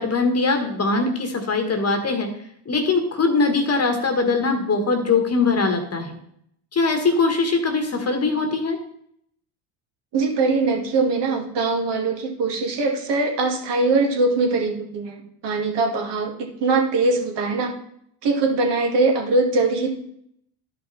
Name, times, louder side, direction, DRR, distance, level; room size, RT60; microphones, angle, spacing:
voice 1, 0.0-2.3 2.6-6.2 6.7-8.8, left 3 dB, 30° left, 5 dB, 1.5 m, -21 dB
voice 2, 10.1-17.7 18.2-20.0, right 3 dB, 55° right, 2 dB, 2.2 m, -22 dB
11.5 x 5.3 x 4.1 m, 0.70 s
supercardioid pair, 95°, 49 cm